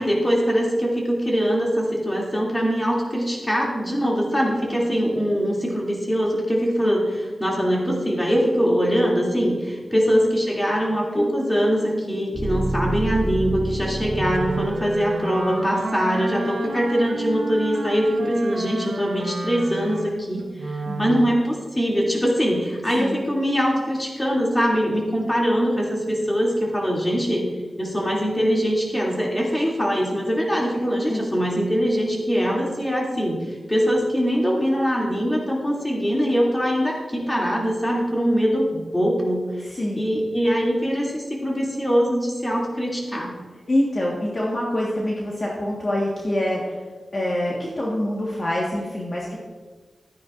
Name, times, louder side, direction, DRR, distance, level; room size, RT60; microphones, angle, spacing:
voice 1, 0.0-27.5 27.8-33.4 33.7-39.7 39.9-43.3, equal, 15° left, -3 dB, 2.7 m, -22 dB
voice 2, 9.9-10.3 20.8-21.2 22.9-23.2 31.1-31.2 39.7-40.0 43.7-46.8 47.1-49.4, left 1 dB, 40° left, -4 dB, 1.6 m, -26 dB
sound 1, 11.2-15.2, right 1 dB, 15° right, 1.1 m, -29 dB
Wind instrument woodwind instrument, 14.1-21.4, right 3 dB, 90° right, 1.1 m, -31 dB
13.5 x 9.5 x 2.6 m, 1.4 s
wide cardioid pair, 80°, 0 cm